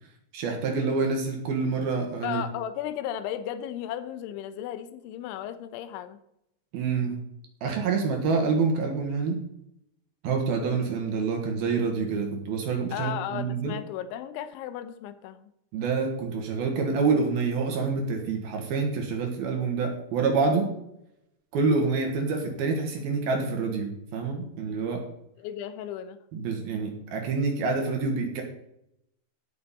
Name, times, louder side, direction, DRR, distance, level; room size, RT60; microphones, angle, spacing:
voice 1, 0.3-2.4 6.7-7.2 7.6-9.4 10.2-13.7 15.7-20.7 21.5-25.0 26.3-28.4, right 4 dB, 65° right, 2 dB, 3.0 m, -27 dB
voice 2, 2.2-6.2 12.9-15.5 25.4-26.2, left 10 dB, 85° left, 11 dB, 3.2 m, -35 dB
16.5 x 6.8 x 4.2 m, 0.78 s
omnidirectional pair, 5.3 m